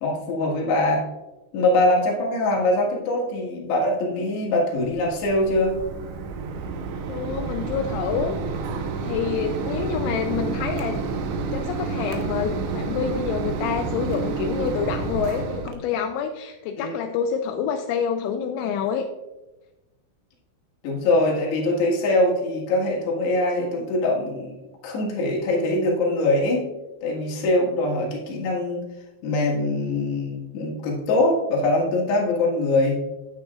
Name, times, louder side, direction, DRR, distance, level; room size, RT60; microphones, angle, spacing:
voice 1, 0.0-1.1 1.5-5.8 16.8-16.9 20.8-24.6 24.8-26.7 27.0-28.8 29.2-33.0, left 2 dB, 65° left, -3 dB, 3.5 m, -23 dB
Mechanisms, 4.8-15.8, right 4 dB, 75° right, 2.8 m, -29 dB
voice 2, 7.1-8.4 9.0-11.0 11.5-19.1, left 7 dB, 85° left, 5 dB, 2.8 m, -27 dB
9.5 x 8.8 x 2.4 m, 1.1 s
omnidirectional pair, 5.7 m